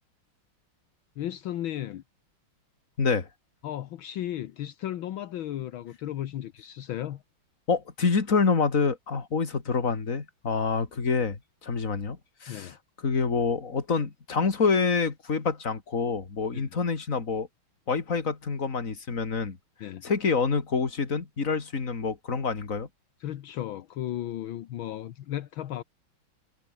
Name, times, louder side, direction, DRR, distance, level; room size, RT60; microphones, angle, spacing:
voice 1, 1.2-2.0 3.6-7.2 12.5-12.8 16.5-16.7 19.8-20.1 23.2-25.8, left 12 dB, 75° left, 1.7 m, -35 dB
voice 2, 3.0-3.3 7.7-12.7 13.0-17.5 17.9-19.6 20.0-22.9, left 5 dB, 40° left, 2.8 m, -27 dB
omnidirectional pair, 2.3 m